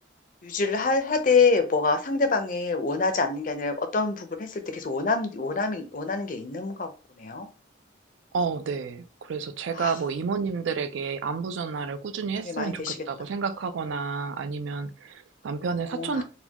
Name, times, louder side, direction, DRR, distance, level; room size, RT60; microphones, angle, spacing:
voice 1, 0.4-6.9 7.2-7.5 9.7-9.9 12.4-13.0 15.9-16.2, left 4 dB, 45° left, 0.5 m, -26 dB
voice 2, 8.3-16.2, right 5 dB, 75° right, 0.4 m, -30 dB
4.2 x 2.2 x 2.9 m
head